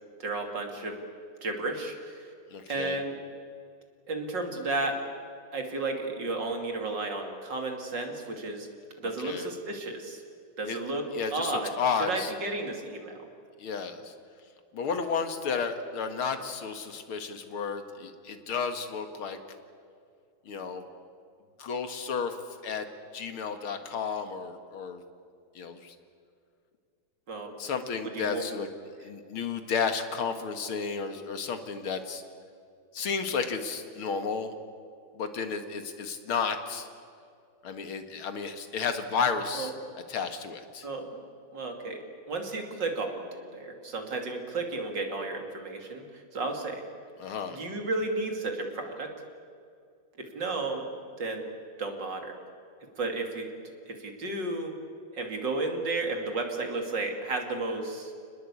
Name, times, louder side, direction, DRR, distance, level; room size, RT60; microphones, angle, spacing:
voice 1, 0.2-1.0 1.4-2.3 2.7-3.2 4.1-5.0 5.5-8.7 9.0-10.2 10.6-11.0 11.3-11.7 12.1-13.3 27.3-27.5 28.1-28.4 39.5-39.7 40.8-41.2 41.5-46.8 47.5-49.1 50.2-50.9 51.2-51.4 51.8-52.3 53.0-53.5 53.9-54.7 55.1-58.1, right 2 dB, 55° right, 4 dB, 3.4 m, -33 dB
voice 2, 2.5-3.0 9.0-9.5 10.7-10.8 11.1-12.3 13.6-14.1 14.7-19.4 20.5-20.8 21.6-22.4 22.6-22.9 23.1-25.0 25.5-26.0 27.6-28.7 29.0-32.2 32.9-34.6 35.2-36.9 37.6-39.7 40.1-40.9 47.2-47.6, left 5 dB, 90° left, 8 dB, 2.6 m, -32 dB
29.0 x 20.0 x 8.5 m, 2.3 s
omnidirectional pair, 2.3 m